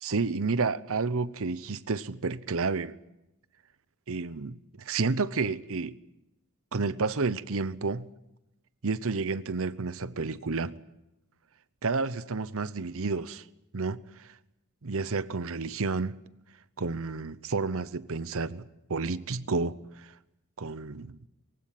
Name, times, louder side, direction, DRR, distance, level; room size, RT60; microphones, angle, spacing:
voice 1, 0.0-2.9 4.1-6.0 6.7-8.1 8.8-10.8 11.8-13.4 13.7-14.3 14.8-16.2 16.8-20.1 20.6-21.2, right 4 dB, 65° right, 0.9 m, -31 dB
23.0 x 16.5 x 9.2 m
head